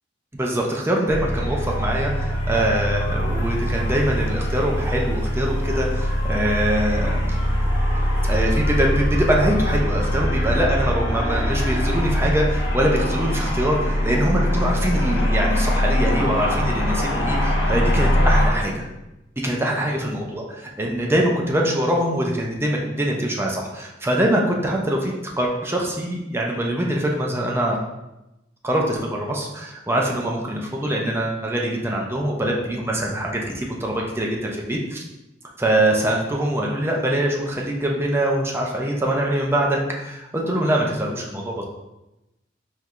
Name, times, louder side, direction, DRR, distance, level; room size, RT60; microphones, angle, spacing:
voice 1, 0.3-7.2 8.2-18.8 19.4-27.8 28.6-35.1 35.6-41.6, right 1 dB, 15° right, -1 dB, 0.5 m, -23 dB
sound 1, 1.1-18.5, equal, 75° left, 1.0 m, -22 dB
4.5 x 3.4 x 2.5 m, 0.96 s
head